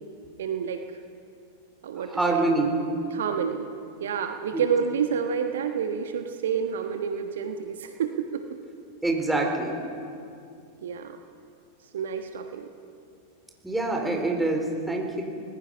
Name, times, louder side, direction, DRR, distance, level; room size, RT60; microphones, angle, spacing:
voice 1, 0.4-0.8 1.8-2.4 3.1-3.7 4.0-8.4 10.8-11.2 11.9-12.7, right 7 dB, 60° right, 6 dB, 1.2 m, -29 dB
voice 2, 2.0-2.7 4.5-4.6 9.0-9.8 13.6-15.2, right 2 dB, 5° right, 1 dB, 4.2 m, -25 dB
25.5 x 20.0 x 5.5 m, 2.4 s
figure-of-eight pair, 90°, 0 cm